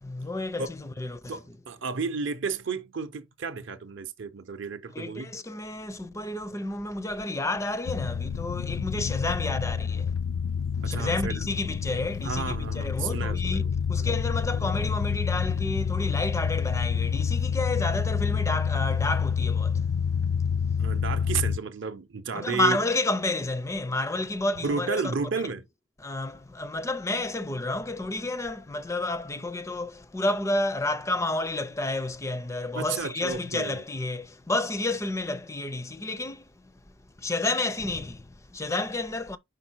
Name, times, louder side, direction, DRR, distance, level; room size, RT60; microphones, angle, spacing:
voice 1, 0.0-1.4 4.9-10.1 10.8-13.6 13.9-19.9 22.3-25.5 26.0-39.4, left 2 dB, 15° left, 0.4 m, -30 dB
voice 2, 1.3-5.3 10.8-11.4 12.2-13.7 14.0-14.2 20.8-22.8 24.6-25.6 32.7-33.8, right 5 dB, 60° right, 0.6 m, -32 dB
sound 1, 7.9-21.6, left 6 dB, 80° left, 0.4 m, -28 dB
5.2 x 4.1 x 4.4 m
head